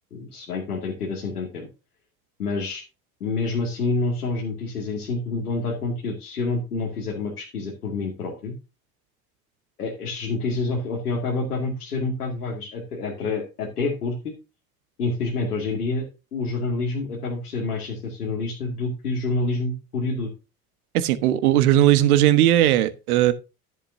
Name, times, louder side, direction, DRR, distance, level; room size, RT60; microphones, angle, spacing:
voice 1, 0.1-1.7 2.4-2.8 3.2-8.5 9.8-14.3 15.0-16.1 16.3-20.3, left 3 dB, 90° left, 2.4 m, -28 dB
voice 2, 20.9-23.3, right 13 dB, 75° right, 1.3 m, -18 dB
11.0 x 10.5 x 2.7 m
hypercardioid pair, 65°, 44 cm